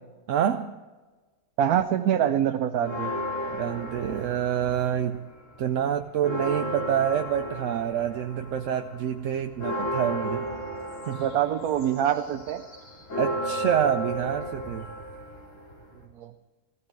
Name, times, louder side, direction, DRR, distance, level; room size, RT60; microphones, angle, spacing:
voice 1, 0.3-0.8 3.5-5.3 5.6-10.5 11.1-11.3 13.2-14.9, right 9 dB, 65° right, 7 dB, 1.0 m, -27 dB
voice 2, 1.6-3.1 11.2-12.6 16.2-16.3, right 10 dB, 85° right, 7 dB, 1.2 m, -25 dB
sound 1, 2.8-5.2 5.5-16.0, equal, 60° left, 3.5 m, -34 dB
17.5 x 15.5 x 4.7 m, 1.3 s
omnidirectional pair, 1.5 m